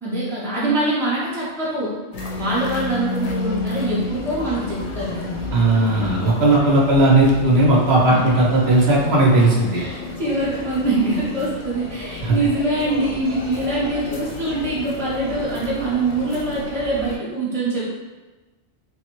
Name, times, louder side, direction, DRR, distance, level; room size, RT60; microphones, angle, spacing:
voice 1, 0.0-2.0 2.4-5.5 8.1-8.2 9.7-17.9, right 2 dB, 5° left, -8 dB, 0.5 m, -24 dB
sound 1, 2.1-17.2, left 2 dB, 55° left, 0.6 m, -31 dB
voice 2, 5.5-9.8 12.2-12.4, right 2 dB, 70° right, -4 dB, 0.9 m, -16 dB
3.3 x 2.0 x 3.0 m, 1.2 s
omnidirectional pair, 1.1 m